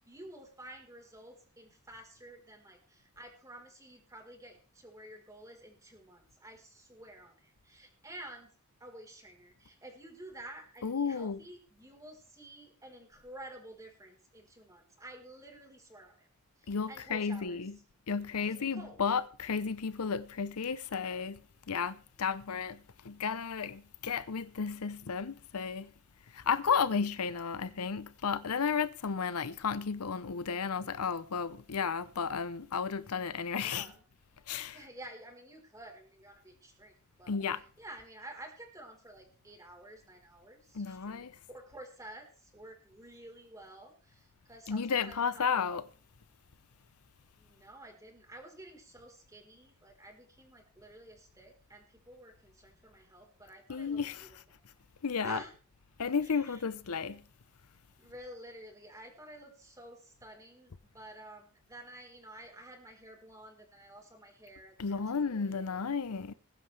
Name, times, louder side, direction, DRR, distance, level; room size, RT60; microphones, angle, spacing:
voice 1, 0.0-8.5 8.8-16.3 16.6-17.6 18.4-19.0 33.6-34.0 34.7-36.9 37.2-37.3 37.8-45.5 47.4-54.6 55.2-55.5 56.2-56.6 58.0-65.6, right 1 dB, 15° right, 4.2 m, -51 dB
voice 2, 10.8-11.4 16.7-17.8 18.1-21.4 21.7-25.9 26.3-33.9 34.5-34.8 37.3-37.6 40.7-41.4 44.7-45.8 53.7-54.3 55.0-55.4 56.0-57.2 64.8-66.3, left 6 dB, 80° left, 0.7 m, -33 dB
20.5 x 11.0 x 3.4 m
head